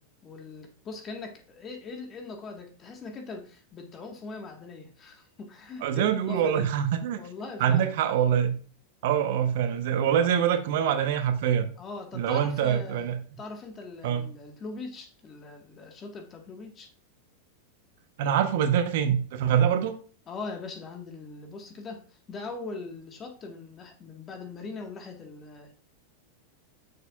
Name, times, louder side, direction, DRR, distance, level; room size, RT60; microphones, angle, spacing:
voice 1, 0.2-6.7 7.2-7.9 10.2-10.3 11.8-13.1 13.4-16.9 20.3-25.9, left 3 dB, 30° left, 1.5 m, -41 dB
voice 2, 5.8-7.2 7.6-8.5 9.0-11.7 12.1-13.2 14.0-14.3 18.2-20.0, right 9 dB, 65° right, 0.9 m, -24 dB
6.7 x 6.5 x 2.4 m
hypercardioid pair, 105°, 0 cm